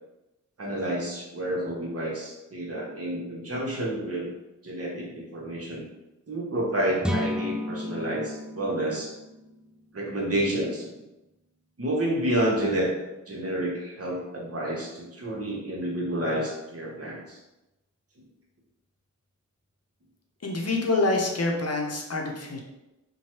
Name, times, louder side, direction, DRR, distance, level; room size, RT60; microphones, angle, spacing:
voice 1, 0.6-4.3 4.6-5.9 6.3-9.1 9.9-11.0 11.8-12.9 13.3-17.4, right 1 dB, 45° right, -3 dB, 1.0 m, -29 dB
sound 1, 7.0-10.8, left 1 dB, 5° right, 0.3 m, -33 dB
voice 2, 20.4-22.6, left 2 dB, 50° left, 0 dB, 0.7 m, -26 dB
3.0 x 2.2 x 2.9 m, 0.97 s
cardioid pair, 40°, 33 cm